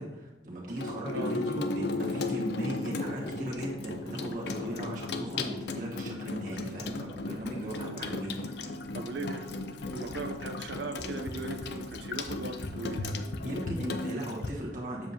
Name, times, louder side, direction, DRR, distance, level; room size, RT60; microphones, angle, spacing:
voice 1, 0.0-8.8 13.4-15.1, right 1 dB, 45° right, 1.2 m, -38 dB
Water tap faucet / Sink (filling or washing), 0.7-14.5, left 3 dB, 60° left, 0.5 m, -35 dB
voice 2, 8.9-13.2, right 3 dB, 70° right, 0.5 m, -39 dB
7.1 x 7.1 x 2.7 m
head